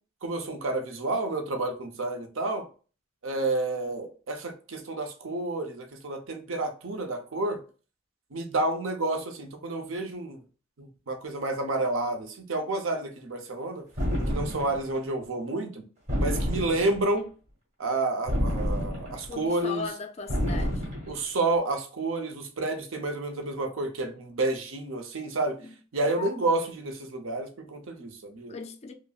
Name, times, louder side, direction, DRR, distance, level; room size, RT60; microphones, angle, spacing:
voice 1, 0.2-2.6 3.2-7.6 8.3-10.4 10.8-13.9 14.3-15.8 16.2-17.3 17.8-19.9 21.1-25.6 25.9-28.5, right 2 dB, 70° right, 0.7 m, -30 dB
sound 1, 14.0-14.8 16.1-17.1 18.3-19.3 20.3-21.2, equal, 35° right, 1.3 m, -28 dB
voice 2, 19.3-20.8 25.6-25.7 26.1-26.4 28.5-28.9, left 5 dB, 30° left, 0.3 m, -38 dB
5.0 x 2.0 x 2.3 m
head